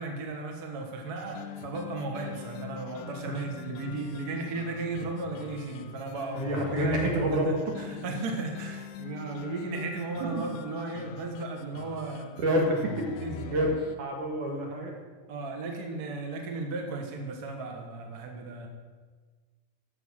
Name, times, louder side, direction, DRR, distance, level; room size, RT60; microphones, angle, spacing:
voice 1, 0.0-7.0 7.3-12.3 13.1-13.7 15.3-18.7, right 3 dB, 50° right, 2 dB, 1.2 m, -36 dB
sound 1, 1.2-14.0, left 8 dB, 80° left, 2.1 m, -43 dB
voice 2, 6.3-7.6 12.4-12.8 13.5-13.7 14.0-14.9, right 1 dB, 75° right, 0 dB, 3.3 m, -27 dB
13.0 x 6.1 x 6.3 m, 1.4 s
omnidirectional pair, 3.6 m